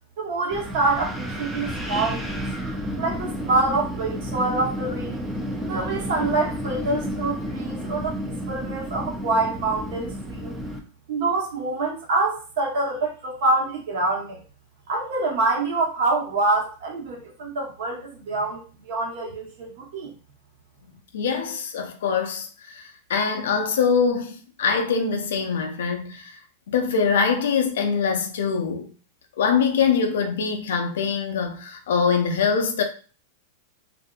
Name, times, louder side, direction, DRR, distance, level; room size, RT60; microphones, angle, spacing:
voice 1, 0.2-2.4 3.0-5.2 5.6-10.5 11.1-14.4 14.9-20.1, right 3 dB, 70° right, 1.1 m, -26 dB
Wind, 0.5-10.8, equal, 5° right, 0.5 m, -31 dB
voice 2, 21.1-26.4 26.7-28.9 29.4-32.8, left 6 dB, 80° left, 0.5 m, -23 dB
2.6 x 2.5 x 2.3 m
hypercardioid pair, 120°, 0 cm